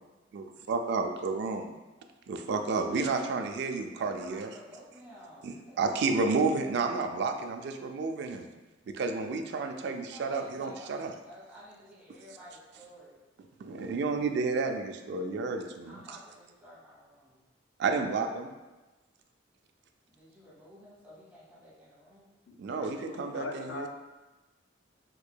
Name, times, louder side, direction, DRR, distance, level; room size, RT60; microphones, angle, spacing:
voice 1, 0.3-1.7 2.3-4.5 5.4-8.5 8.9-11.1 13.6-16.0 17.8-18.5 22.6-23.9, right 4 dB, 60° right, 6 dB, 0.3 m, -31 dB
voice 2, 3.9-5.8 6.0-6.5 9.6-13.2 15.8-17.4 20.1-22.3, equal, 10° right, -10 dB, 1.3 m, -52 dB
voice 3, 22.5-23.9, left 2 dB, 90° left, 2 dB, 0.4 m, -41 dB
4.5 x 2.6 x 2.2 m, 1.1 s
head